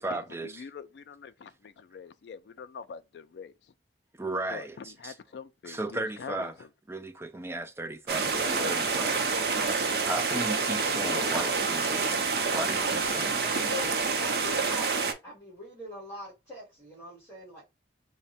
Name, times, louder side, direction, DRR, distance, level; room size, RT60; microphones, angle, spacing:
voice 1, 0.0-0.7 4.2-5.2 5.6-6.6 6.9-9.5 10.0-12.2 12.5-13.6, right 2 dB, 15° right, 0.3 m, -36 dB
voice 2, 0.6-3.5 4.5-4.6 5.0-6.4, left 6 dB, 70° left, 0.3 m, -44 dB
sound 1, 8.1-15.1, right 4 dB, 60° right, 0.6 m, -28 dB
sound 2, 8.4-9.4 11.0-12.0, left 2 dB, 35° left, 0.6 m, -39 dB
voice 3, 13.5-17.6, left 1 dB, 10° left, 1.8 m, -42 dB
3.5 x 2.1 x 4.0 m
head